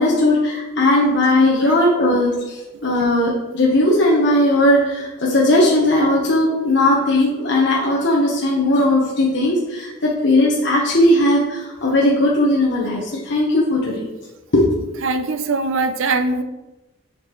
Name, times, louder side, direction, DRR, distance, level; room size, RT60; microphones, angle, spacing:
voice 1, 0.0-14.1 14.5-14.7, left 1 dB, 60° left, -4 dB, 1.1 m, -17 dB
voice 2, 15.0-16.4, right 3 dB, 75° right, 9 dB, 0.6 m, -21 dB
7.3 x 5.9 x 3.1 m, 1.0 s
head